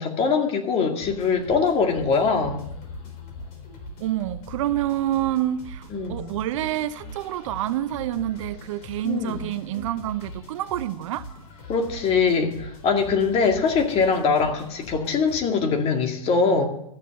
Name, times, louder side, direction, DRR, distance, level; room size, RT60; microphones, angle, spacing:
voice 1, 0.0-2.7 5.9-6.2 9.0-9.4 11.7-16.7, left 5 dB, 30° left, 4 dB, 2.2 m, -22 dB
sound 1, 1.0-15.4, left 1 dB, 45° left, 3.9 m, -41 dB
voice 2, 4.0-11.3, right 13 dB, 55° right, 13 dB, 0.7 m, -27 dB
13.5 x 7.4 x 7.7 m, 0.76 s
hypercardioid pair, 115°, 20 cm